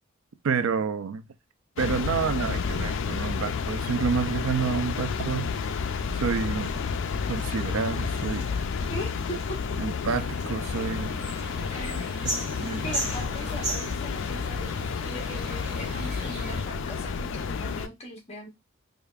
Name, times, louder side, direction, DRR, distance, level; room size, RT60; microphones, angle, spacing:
voice 1, 0.4-1.2 1.8-5.5 6.1-6.8 7.3-8.6 9.8-11.1 12.2-12.9, right 6 dB, 75° right, 0.4 m, -29 dB
sound 1, 1.8-17.9, left 5 dB, 60° left, 0.4 m, -31 dB
Human voice, 5.9-13.9, right 3 dB, 50° right, 0.8 m, -51 dB
voice 2, 8.9-9.8 11.7-12.4 12.8-18.5, equal, 30° left, 1.0 m, -40 dB
sound 2, 10.1-16.6, right 2 dB, 35° right, 1.4 m, -37 dB
4.9 x 2.4 x 2.3 m
head